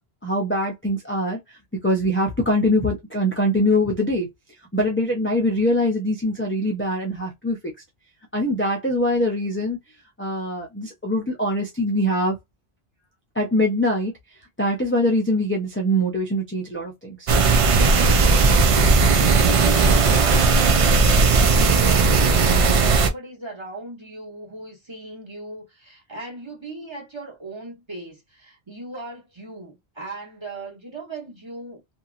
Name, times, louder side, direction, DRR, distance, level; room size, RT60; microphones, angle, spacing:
voice 1, 0.2-1.4 1.8-4.3 4.7-7.7 8.3-9.8 10.2-12.4 13.4-14.1 14.6-17.3, left 1 dB, 15° left, 0.5 m, -23 dB
sound 1, 17.3-23.1, right 4 dB, 55° right, 0.4 m, -17 dB
voice 2, 19.4-31.8, right 3 dB, 25° right, 1.2 m, -37 dB
2.8 x 2.6 x 2.4 m
omnidirectional pair, 1.1 m